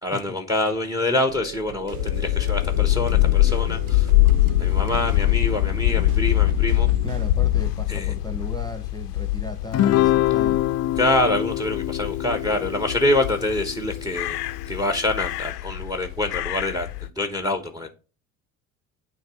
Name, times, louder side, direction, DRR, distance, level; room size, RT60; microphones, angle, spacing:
voice 1, 0.0-4.1 4.6-6.9 7.9-8.1 11.0-14.4 14.7-17.9, left 1 dB, 10° right, 1.1 m, -25 dB
sound 1, 1.3-7.3, right 12 dB, 45° right, 0.5 m, -38 dB
sound 2, 1.9-17.1, left 15 dB, 90° left, 0.6 m, -23 dB
voice 2, 7.0-10.6, left 2 dB, 10° left, 1.3 m, -36 dB
Guitar, 9.7-14.3, left 14 dB, 35° left, 0.5 m, -24 dB
9.0 x 3.1 x 4.8 m
hypercardioid pair, 65°, 45 cm